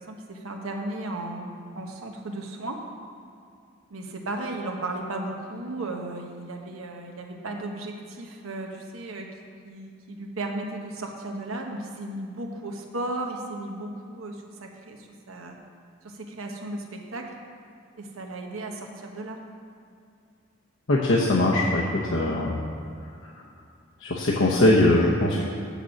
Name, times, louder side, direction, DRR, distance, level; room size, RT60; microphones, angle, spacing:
voice 1, 0.1-2.8 3.9-9.3 9.6-15.6 16.0-17.3 18.0-19.4, right 2 dB, 90° right, 2 dB, 1.0 m, -35 dB
voice 2, 20.9-22.6 24.0-25.4, left 1 dB, 65° left, -4 dB, 0.8 m, -21 dB
7.7 x 6.6 x 6.3 m, 2.4 s
head